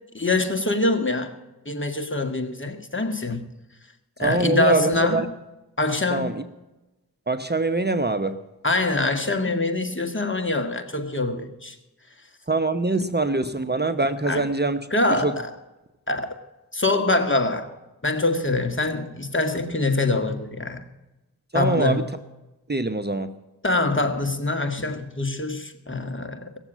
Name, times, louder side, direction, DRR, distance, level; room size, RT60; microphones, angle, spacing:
voice 1, 0.1-1.3 1.7-3.4 4.2-5.3 5.8-6.3 8.6-11.8 14.3-14.5 14.9-15.6 16.1-16.3 16.7-17.7 18.0-20.8 21.5-22.1 23.6-26.5, left 2 dB, 30° left, 1.9 m, -24 dB
voice 2, 4.2-5.3 6.1-6.4 7.3-8.4 12.5-14.8 15.2-15.3 21.5-22.0 22.7-23.3, right 2 dB, 25° right, 0.9 m, -23 dB
17.5 x 7.3 x 9.0 m
cardioid pair, 40°, 38 cm